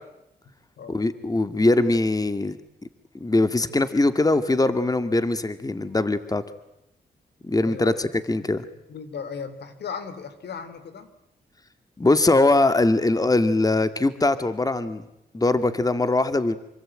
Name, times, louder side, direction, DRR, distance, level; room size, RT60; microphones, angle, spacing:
voice 1, 0.9-2.6 3.2-6.4 7.4-8.7 12.0-15.0 15.3-16.6, left 2 dB, 20° left, 11 dB, 2.1 m, -21 dB
voice 2, 7.6-8.1 8.4-8.5 8.9-11.1, left 6 dB, 75° left, 12 dB, 3.5 m, -36 dB
27.5 x 24.0 x 8.9 m, 0.86 s
cardioid pair, 65°, 17 cm